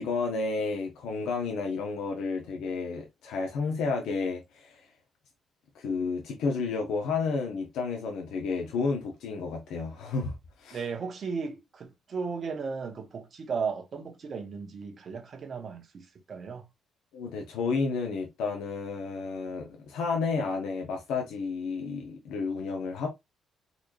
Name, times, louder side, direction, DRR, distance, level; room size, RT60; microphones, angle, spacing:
voice 1, 0.0-4.8 5.7-10.8 17.1-23.1, left 4 dB, 85° left, 0.9 m, -31 dB
voice 2, 10.7-16.7, right 5 dB, 50° right, 1.1 m, -35 dB
4.1 x 3.1 x 2.5 m
cardioid pair, 90°, 0 cm